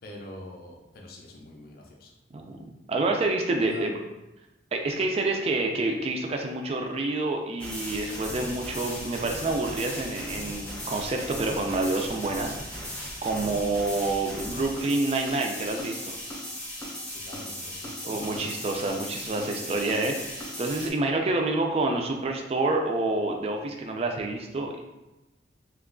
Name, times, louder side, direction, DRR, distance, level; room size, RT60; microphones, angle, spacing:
voice 1, 0.0-2.1 3.5-3.9 5.5-5.7 17.1-18.7, left 1 dB, 55° left, 0 dB, 0.5 m, -44 dB
voice 2, 2.3-4.0 4.7-16.1 18.0-24.8, right 2 dB, 35° right, 2 dB, 0.3 m, -28 dB
sound 1, 7.6-20.9, equal, 5° left, 0.6 m, -37 dB
2.9 x 2.3 x 3.6 m, 1.0 s
head